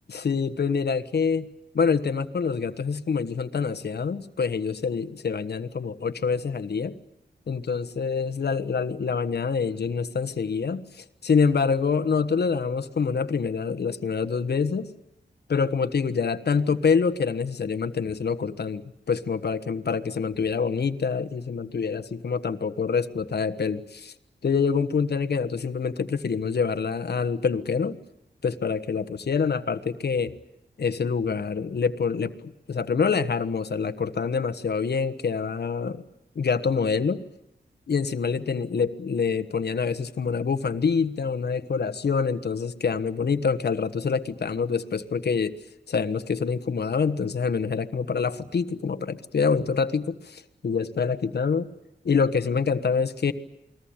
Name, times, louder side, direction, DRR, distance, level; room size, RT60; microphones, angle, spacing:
voice 1, 0.1-1.5 1.7-6.9 7.5-14.9 15.5-24.1 24.4-28.0 28.4-30.3 30.8-36.0 36.3-37.2 37.9-45.5 45.9-51.7 52.0-53.3, left 5 dB, 65° left, 8 dB, 1.3 m, -26 dB
29.0 x 21.0 x 8.9 m, 0.89 s
wide cardioid pair, 120°, 18 cm